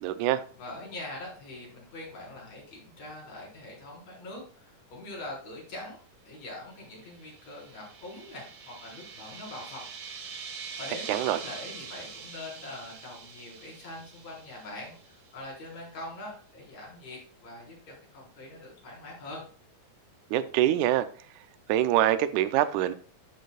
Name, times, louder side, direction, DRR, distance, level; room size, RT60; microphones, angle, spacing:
voice 1, 0.0-0.4 11.1-11.4 20.3-21.1 21.7-22.9, right 12 dB, 90° right, 11 dB, 1.7 m, -24 dB
voice 2, 0.6-9.9 10.4-10.5 10.8-19.4, left 2 dB, 50° left, -3 dB, 5.4 m, -43 dB
sound 1, 7.0-15.3, right 6 dB, 70° right, 3.1 m, -44 dB
14.0 x 6.6 x 2.3 m, 0.41 s
omnidirectional pair, 4.1 m